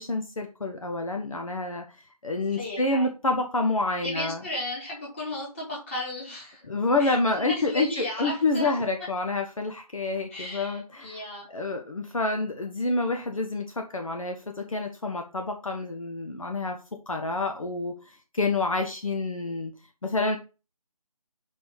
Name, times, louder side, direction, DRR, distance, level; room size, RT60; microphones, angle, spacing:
voice 1, 0.0-2.0 2.2-4.4 6.7-11.2 11.5-16.8 17.1-19.7 20.0-20.4, left 2 dB, 60° left, 4 dB, 1.3 m, -28 dB
voice 2, 2.5-3.1 4.0-6.7 7.0-9.1 10.3-11.5, left 1 dB, 20° left, -5 dB, 3.1 m, -35 dB
5.5 x 5.0 x 5.4 m, 0.32 s
figure-of-eight pair, 165°, 20 cm